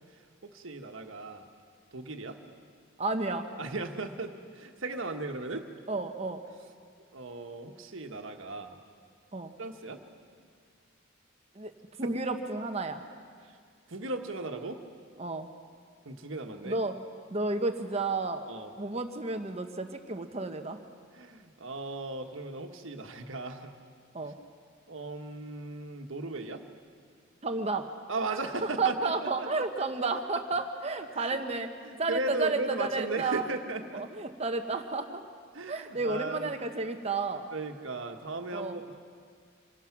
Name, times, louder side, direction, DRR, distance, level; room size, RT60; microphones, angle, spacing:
voice 1, 0.1-1.5 1.9-2.4 3.6-5.7 7.1-8.8 9.6-10.0 12.0-12.2 13.4-13.6 13.9-14.8 16.0-16.8 18.5-18.7 21.1-23.7 24.2-24.3 24.9-26.6 28.1-29.6 31.1-31.4 31.8-34.0 35.5-36.5 37.5-39.0, right 2 dB, 75° right, 5 dB, 1.4 m, -37 dB
voice 2, 3.0-3.5 5.9-6.4 9.3-9.5 11.6-11.7 12.0-13.0 15.2-15.5 16.6-17.0 17.3-18.5 18.8-20.8 24.1-24.4 27.4-27.9 28.8-31.7 32.0-33.4 33.9-35.2 35.7-37.5 38.5-38.8, right 3 dB, 30° right, 6 dB, 1.0 m, -31 dB
26.0 x 18.0 x 5.9 m, 2.1 s
head